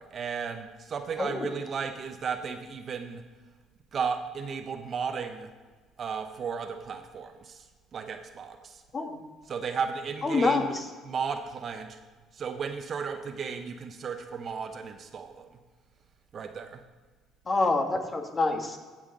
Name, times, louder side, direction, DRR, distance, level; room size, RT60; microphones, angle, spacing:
voice 1, 0.0-3.2 3.9-5.5 6.0-7.6 7.9-8.8 9.5-10.7 11.0-12.0 12.3-15.5 16.3-16.8, right 6 dB, 50° right, 7 dB, 0.9 m, -34 dB
voice 2, 1.2-1.5 8.9-9.2 10.2-10.8 17.5-18.8, left 3 dB, 35° left, 4 dB, 1.5 m, -26 dB
15.0 x 5.8 x 3.9 m, 1.4 s
supercardioid pair, 70°, 0 cm